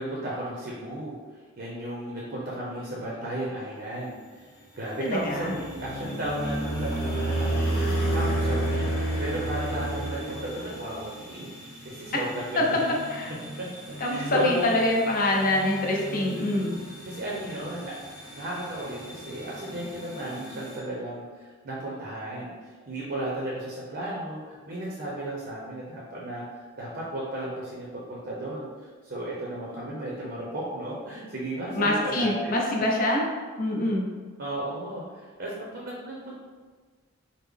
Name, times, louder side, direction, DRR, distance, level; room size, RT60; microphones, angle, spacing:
voice 1, 0.0-4.5 4.7-8.9 9.2-11.5 11.8-12.9 14.0-14.7 15.9-16.7 17.1-26.4 26.8-32.6 34.4-36.3, right 1 dB, 45° right, -5 dB, 0.6 m, -34 dB
sound 1, 3.2-20.8, equal, ahead, 0.6 m, -44 dB
voice 2, 5.0-5.5 12.6-12.7 13.1-13.3 14.0-16.7 31.8-33.2 33.6-34.0, left 1 dB, 40° left, -1 dB, 0.5 m, -25 dB
sound 2, 5.2-11.0, right 1 dB, 70° left, 1.2 m, -28 dB
3.6 x 2.0 x 3.3 m, 1.5 s
head